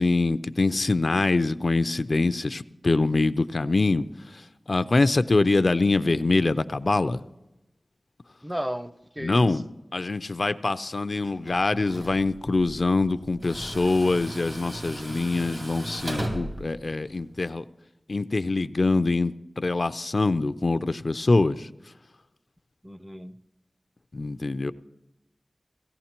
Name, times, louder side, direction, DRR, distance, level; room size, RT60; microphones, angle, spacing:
voice 1, 0.0-4.1 4.3-7.2 9.2-9.6 9.9-17.6 18.1-21.7 24.1-24.7, left 3 dB, 60° left, 13 dB, 0.4 m, -24 dB
voice 2, 8.4-9.6 22.8-23.4, equal, 10° right, 13 dB, 0.6 m, -34 dB
Tools, 11.2-17.5, right 1 dB, 65° right, 2.9 m, -37 dB
18.0 x 14.5 x 2.9 m, 0.94 s
wide cardioid pair, 50°, 0 cm